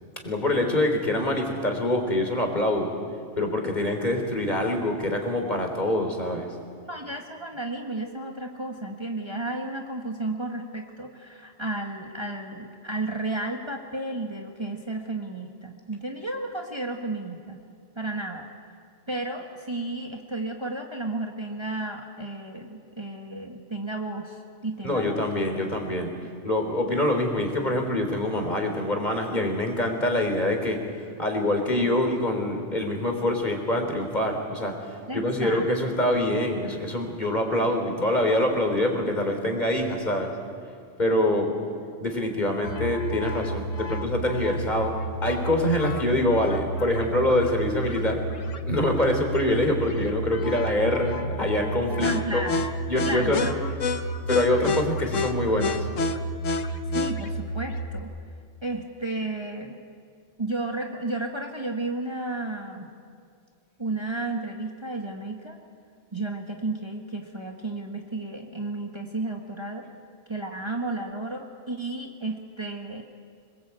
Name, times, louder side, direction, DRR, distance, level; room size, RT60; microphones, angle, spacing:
voice 1, 0.2-2.9 3.4-6.5 24.8-26.1 26.4-30.8 31.2-40.3 41.0-41.5 42.0-44.9 45.2-48.2 48.7-52.5 52.9-53.4 54.3-55.9, left 1 dB, 35° left, 3 dB, 3.7 m, -25 dB
voice 2, 6.9-17.6 18.0-18.5 19.1-25.2 35.1-35.7 52.0-52.7 53.0-53.6 56.9-58.1 58.6-59.7 60.4-62.9 63.8-65.6 66.1-69.9 70.3-73.0, right 2 dB, 20° right, 1 dB, 1.7 m, -33 dB
sound 1, 42.6-58.0, equal, 85° left, 1.5 m, -30 dB
26.5 x 21.0 x 8.3 m, 2.3 s
omnidirectional pair, 1.3 m